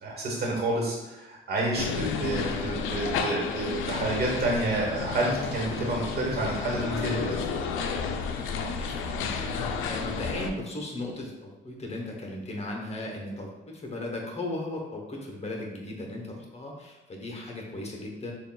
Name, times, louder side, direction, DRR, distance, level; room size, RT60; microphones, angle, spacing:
voice 1, 0.0-7.5, right 2 dB, 55° right, -1 dB, 1.2 m, -29 dB
sound 1, 1.8-10.5, left 5 dB, 90° left, 0.4 m, -31 dB
voice 2, 8.4-18.3, left 1 dB, 35° left, 0 dB, 0.8 m, -37 dB
6.6 x 2.3 x 2.2 m, 1.0 s
cardioid pair, 90°, 20 cm